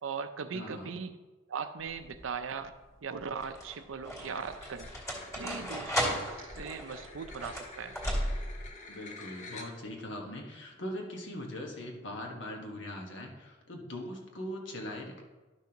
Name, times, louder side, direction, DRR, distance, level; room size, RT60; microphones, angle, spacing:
voice 1, 0.0-1.2 1.5-4.9 5.4-8.0, right 5 dB, 90° right, 10 dB, 0.6 m, -39 dB
voice 2, 0.5-1.0 8.9-15.2, left 1 dB, 65° left, 1 dB, 1.4 m, -41 dB
sound 1, 1.8-2.3 3.2-8.7, equal, 15° left, 2.2 m, -35 dB
sound 2, 4.2-10.0, left 3 dB, 40° left, 0.8 m, -49 dB
12.0 x 5.9 x 2.9 m, 1.2 s
head